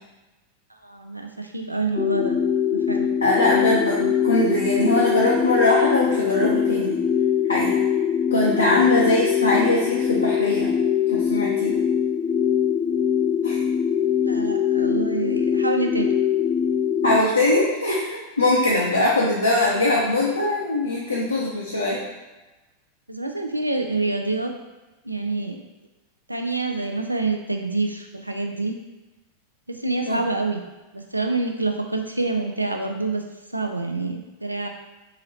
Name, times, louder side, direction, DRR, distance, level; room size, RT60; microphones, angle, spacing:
voice 1, 0.8-2.4 2.7-3.1 14.2-16.1 23.1-24.5 25.0-25.6 26.3-28.8 29.7-30.6 30.9-33.2 33.5-34.7, right 3 dB, 85° right, 4 dB, 0.3 m, -27 dB
sound 1, 2.0-17.2, left 8 dB, 15° left, 0.3 m, -22 dB
voice 2, 3.2-7.0 7.5-7.8 8.3-10.7 11.1-11.7 13.4-13.6 17.0-22.0 30.1-30.2, left 2 dB, 80° left, -6 dB, 0.6 m, -21 dB
3.8 x 2.9 x 2.8 m, 1.1 s
figure-of-eight pair, 90°, 0 cm